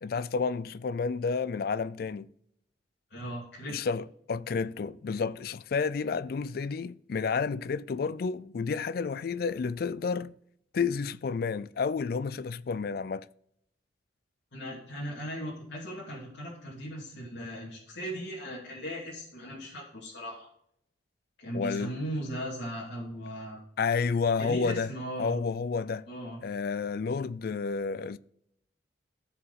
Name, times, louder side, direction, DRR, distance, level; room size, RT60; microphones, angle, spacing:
voice 1, 0.0-2.3 3.7-10.3 10.7-13.3 21.5-21.9 23.8-24.9 25.2-26.0 26.4-28.2, left 5 dB, 50° left, 0.3 m, -30 dB
voice 2, 3.1-3.7 14.5-20.5 21.4-23.6 24.4-25.4 26.1-26.4, equal, 80° left, 2.7 m, -38 dB
14.0 x 4.8 x 4.1 m
head